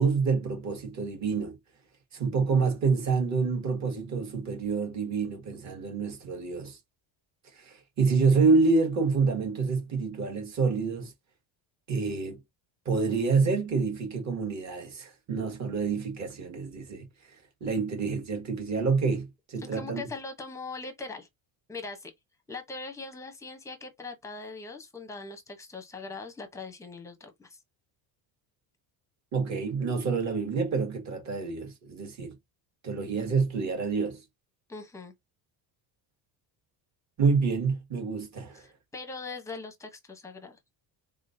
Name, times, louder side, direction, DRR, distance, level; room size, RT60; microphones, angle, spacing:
voice 1, 0.0-1.6 2.1-6.8 7.5-11.1 11.9-12.4 12.8-17.0 17.6-20.1 29.3-32.3 32.8-34.2 37.2-38.6, right 4 dB, 40° right, 1.7 m, -27 dB
voice 2, 19.6-21.3 21.7-22.1 22.5-27.6 34.7-35.1 38.5-40.6, left 3 dB, 5° left, 0.8 m, -41 dB
3.7 x 3.6 x 2.6 m
cardioid pair, 170°, 45 cm